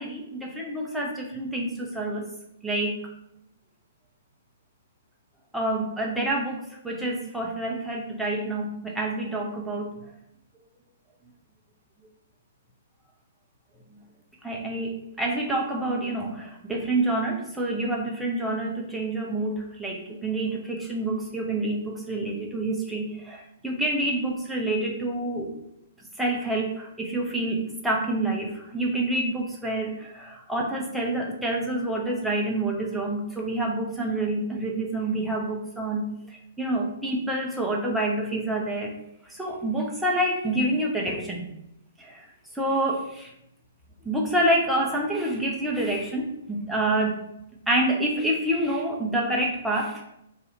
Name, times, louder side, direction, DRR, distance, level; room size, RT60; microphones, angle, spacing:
voice 1, 0.0-2.3 2.6-3.0 5.5-10.1 14.4-25.5 26.2-38.9 39.3-41.5 42.0-42.3 42.5-43.3 44.0-47.2 47.7-50.0, right 1 dB, 5° right, -2 dB, 0.6 m, -27 dB
2.7 x 2.4 x 4.2 m, 0.82 s
figure-of-eight pair, 115°, 0 cm